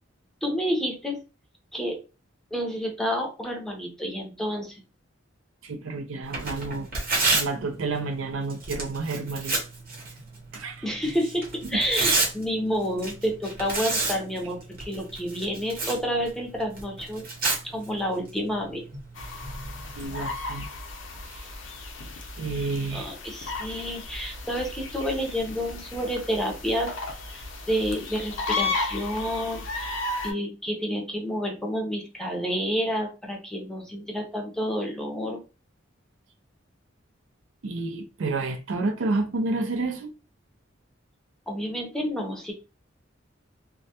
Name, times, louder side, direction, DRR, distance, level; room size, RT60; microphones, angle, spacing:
voice 1, 0.4-1.2 1.7-2.0 2.5-4.8 10.8-17.3 17.6-18.8 22.9-26.9 27.3-35.4 41.5-42.5, equal, 5° left, 0.5 m, -29 dB
voice 2, 5.6-6.9 7.3-9.6 10.5-10.9 11.6-11.8 20.0-20.7 21.3-21.5 22.4-23.1 37.6-40.1, right 3 dB, 90° right, 0.4 m, -30 dB
Tearing, 6.2-20.1, right 3 dB, 50° right, 0.8 m, -32 dB
sound 1, 19.2-30.3, left 3 dB, 75° left, 0.5 m, -34 dB
2.2 x 2.1 x 2.7 m
head